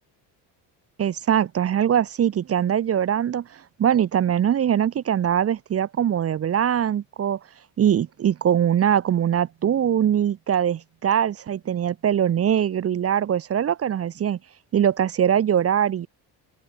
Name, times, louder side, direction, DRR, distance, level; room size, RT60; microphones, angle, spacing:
voice 1, 1.0-7.4 7.8-14.4 14.7-16.1, right 9 dB, 30° right, 0.5 m, -22 dB
open air
supercardioid pair, 80°, 48 cm